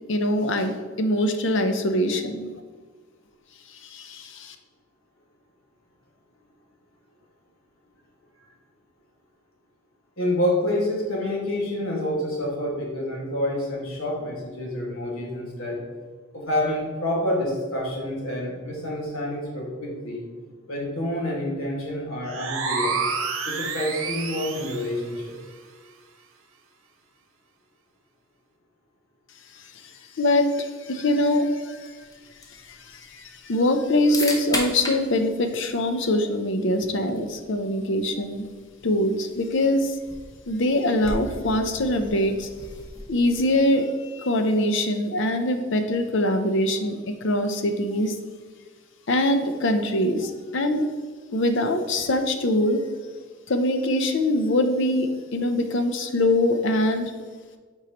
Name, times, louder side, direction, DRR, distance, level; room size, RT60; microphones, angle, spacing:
voice 1, 0.1-2.5 3.7-4.6 29.5-31.9 32.5-38.5 38.8-40.0 40.5-42.5 43.1-48.2 49.1-50.9 51.3-52.8 53.5-57.1, left 1 dB, 60° left, 7 dB, 0.6 m, -23 dB
voice 2, 10.2-15.8 16.3-20.2 20.7-23.0 23.4-25.3, left 1 dB, 75° left, -3 dB, 1.9 m, -28 dB
sound 1, 22.2-25.0, right 4 dB, 75° right, 0.9 m, -29 dB
sound 2, 31.7-43.7, left 1 dB, 20° left, 0.8 m, -38 dB
8.2 x 4.5 x 3.0 m, 1.5 s
head